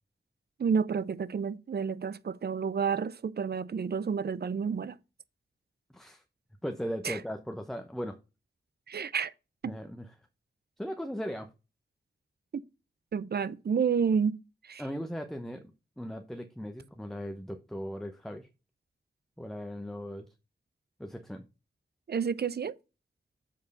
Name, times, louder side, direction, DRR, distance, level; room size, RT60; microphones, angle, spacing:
voice 1, 0.6-5.0 7.0-7.2 8.9-9.3 12.5-12.6 13.1-14.8 22.1-22.8, right 6 dB, 60° right, 0.5 m, -30 dB
voice 2, 5.9-6.2 6.6-8.2 9.6-10.1 10.8-11.5 14.8-15.7 16.0-18.5 19.4-20.3 21.0-21.4, equal, ahead, 0.8 m, -38 dB
7.4 x 4.5 x 5.4 m
cardioid pair, 50°, 19 cm